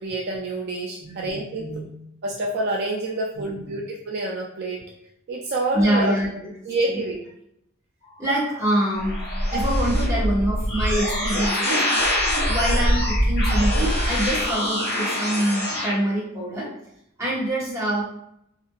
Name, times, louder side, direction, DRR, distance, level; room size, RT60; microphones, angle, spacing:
voice 1, 0.0-1.6 2.2-4.8 5.3-6.1 6.7-7.2, right 2 dB, 50° right, -1 dB, 0.3 m, -27 dB
voice 2, 1.1-1.9 3.3-3.8 5.7-6.5 6.9-7.0 8.2-9.2 9.5-11.8 12.4-16.7 17.2-18.0, right 1 dB, 15° right, -7 dB, 1.0 m, -25 dB
sound 1, 8.2-15.9, equal, 50° left, 1.3 m, -23 dB
2.8 x 2.5 x 2.2 m, 0.77 s
head